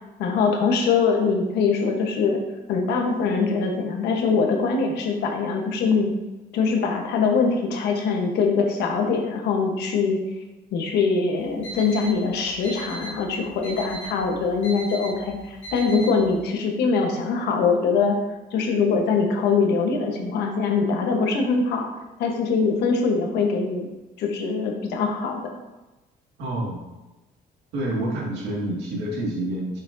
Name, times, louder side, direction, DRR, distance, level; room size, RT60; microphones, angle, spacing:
voice 1, 0.2-2.4 2.7-6.1 6.5-10.2 10.7-18.2 18.5-21.9 22.2-23.9 24.2-25.4, left 4 dB, 80° left, 2 dB, 1.2 m, -23 dB
Alarm, 11.4-16.4, right 2 dB, 35° left, 2.1 m, -38 dB
voice 2, 26.4-26.8 27.7-29.8, right 1 dB, 90° right, -3 dB, 2.1 m, -28 dB
6.8 x 5.7 x 2.7 m, 1.1 s
cardioid pair, 110°, 17 cm